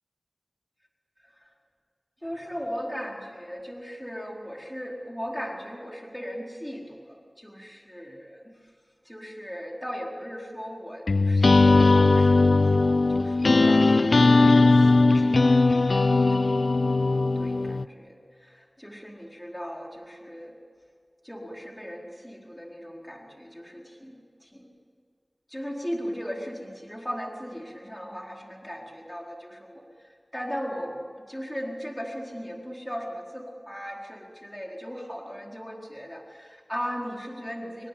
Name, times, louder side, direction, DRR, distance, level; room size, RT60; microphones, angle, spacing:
voice 1, 1.2-1.5 2.2-8.5 9.0-16.5 17.3-20.6 21.2-24.7 25.5-37.9, equal, 10° left, 0 dB, 4.4 m, -38 dB
sound 1, 11.1-17.8, left 3 dB, 85° left, 0.6 m, -19 dB
26.5 x 23.5 x 8.7 m, 2.2 s
wide cardioid pair, 40°, 0 cm